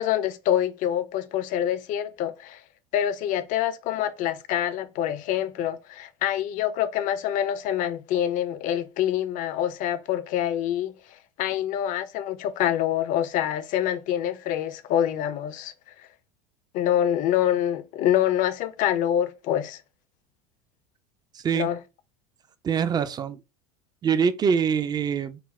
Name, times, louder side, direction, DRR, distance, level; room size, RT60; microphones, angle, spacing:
voice 1, 0.0-2.6 2.9-10.9 11.4-15.7 16.7-19.8 21.5-21.8, left 11 dB, 45° left, 0.6 m, -26 dB
voice 2, 21.3-21.7 22.6-23.4 24.0-25.4, right 7 dB, 20° right, 0.5 m, -24 dB
4.1 x 2.1 x 4.1 m
figure-of-eight pair, 75°, 18 cm